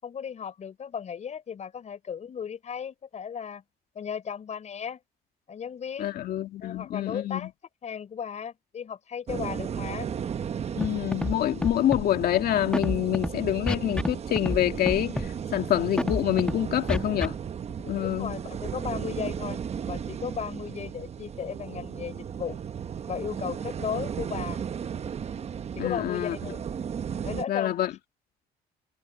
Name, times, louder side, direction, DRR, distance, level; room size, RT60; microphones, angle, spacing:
voice 1, 0.0-3.6 3.9-5.0 5.5-6.2 6.6-7.5 7.8-10.1 18.0-19.6 19.9-22.6 23.1-24.6 25.8-26.6 27.2-27.8, left 7 dB, 45° left, 5.7 m, -35 dB
voice 2, 6.0-7.5 10.8-17.3 17.9-18.3 25.8-26.5 27.5-27.9, left 12 dB, 65° left, 2.0 m, -26 dB
sound 1, 9.3-27.4, right 8 dB, 40° right, 1.1 m, -35 dB
Scratching (performance technique), 10.8-10.9 11.1-11.3 11.6-12.0 12.7-13.3 13.7-14.1 14.4-14.6 14.8-15.3 16.0-16.5 16.9-17.3, left 1 dB, 5° left, 1.5 m, -27 dB
cardioid pair, 110°, 17 cm